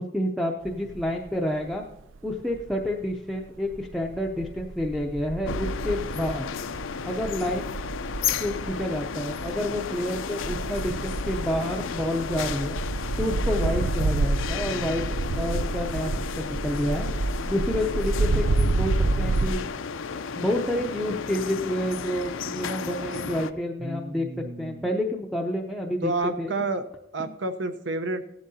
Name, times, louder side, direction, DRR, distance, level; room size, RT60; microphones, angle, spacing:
voice 1, 0.0-1.8 2.2-6.5 7.0-7.7 8.2-12.8 13.2-17.1 17.5-19.6 20.4-24.3 24.6-26.1 26.4-26.5 27.2-27.3, left 1 dB, ahead, -1 dB, 0.6 m, -29 dB
sound 1, 0.7-1.3 1.7-3.0 3.5-19.5, right 3 dB, 85° right, 0.5 m, -29 dB
sound 2, 5.4-23.5, left 6 dB, 85° left, 0.5 m, -33 dB
voice 2, 23.8-24.9 26.0-26.9 27.1-28.2, right 2 dB, 70° right, 10 dB, 0.8 m, -30 dB
16.0 x 11.0 x 2.8 m, 0.88 s
head